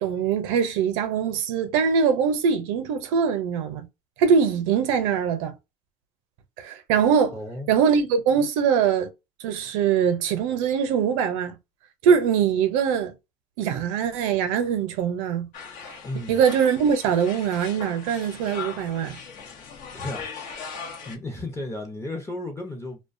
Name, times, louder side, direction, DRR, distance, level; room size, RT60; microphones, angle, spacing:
voice 1, 0.0-3.9 4.2-5.5 6.6-7.4 7.7-9.1 9.4-11.6 12.0-13.1 13.6-15.5 16.3-19.2, right 7 dB, 85° right, 0.6 m, -22 dB
voice 2, 7.3-7.7 16.0-16.4 19.9-20.3 21.1-23.0, left 2 dB, 15° left, 0.6 m, -34 dB
sound 1, 15.5-21.2, left 6 dB, 60° left, 0.8 m, -39 dB
2.3 x 2.2 x 2.5 m
supercardioid pair, 100°, 16 cm